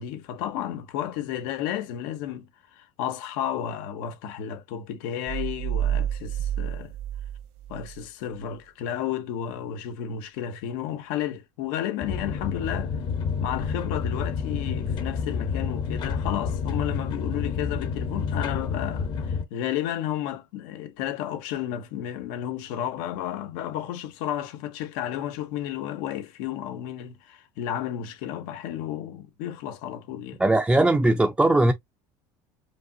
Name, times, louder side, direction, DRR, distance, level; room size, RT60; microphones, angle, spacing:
voice 1, 0.0-6.9 7.7-12.9 13.4-30.4, left 11 dB, 80° left, 1.2 m, -32 dB
sound 1, 5.3-8.0, right 11 dB, 70° right, 0.6 m, -29 dB
sound 2, 12.0-19.4, left 5 dB, 45° left, 1.0 m, -29 dB
voice 2, 30.4-31.7, right 2 dB, 10° right, 0.4 m, -19 dB
5.2 x 3.0 x 2.6 m
cardioid pair, 135°, 11 cm